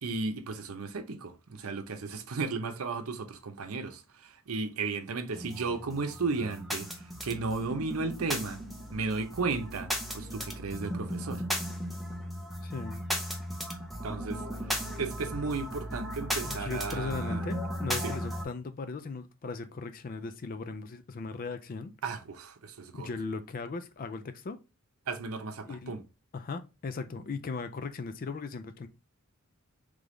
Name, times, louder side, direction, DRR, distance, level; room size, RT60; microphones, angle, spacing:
voice 1, 0.0-8.6 8.9-11.4 14.0-17.4 18.0-18.1 22.0-23.1 25.1-26.0, right 4 dB, 90° right, 0.7 m, -34 dB
sound 1, 5.3-18.4, equal, ahead, 0.7 m, -36 dB
voice 2, 12.6-13.1 16.4-21.9 22.9-24.6 25.6-25.9 26.3-28.9, left 4 dB, 40° left, 0.4 m, -38 dB
3.5 x 3.4 x 3.7 m
head